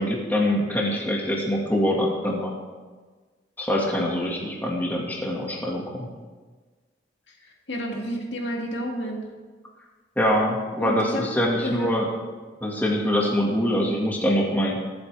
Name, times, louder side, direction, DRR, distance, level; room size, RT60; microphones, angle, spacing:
voice 1, 0.0-2.5 3.6-6.1 10.2-12.1 12.6-14.8, equal, 10° left, -2 dB, 1.9 m, -24 dB
voice 2, 7.3-9.2 10.8-11.2 11.6-11.9, equal, 85° left, -1 dB, 2.4 m, -31 dB
23.5 x 7.9 x 3.4 m, 1.4 s
head